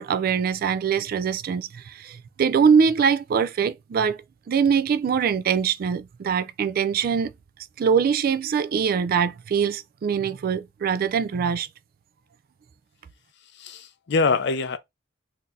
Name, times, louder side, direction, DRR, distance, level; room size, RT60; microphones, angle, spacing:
voice 1, 0.0-4.2 4.5-7.3 7.8-11.7, right 6 dB, 50° right, 0.3 m, -23 dB
voice 2, 13.5-14.8, left 4 dB, 65° left, 0.5 m, -24 dB
3.8 x 2.8 x 2.5 m
head